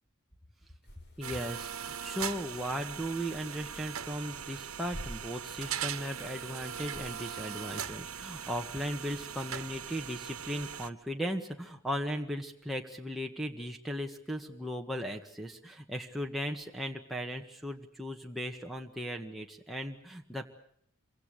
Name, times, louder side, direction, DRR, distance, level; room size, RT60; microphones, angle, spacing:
sound 1, 0.8-7.6, equal, 55° left, 7.9 m, -51 dB
voice 1, 1.2-20.5, equal, ahead, 1 dB, 1.7 m, -37 dB
sound 2, 1.2-10.9, right 8 dB, 85° right, 1.3 m, -40 dB
27.5 x 24.5 x 6.8 m, 0.68 s
head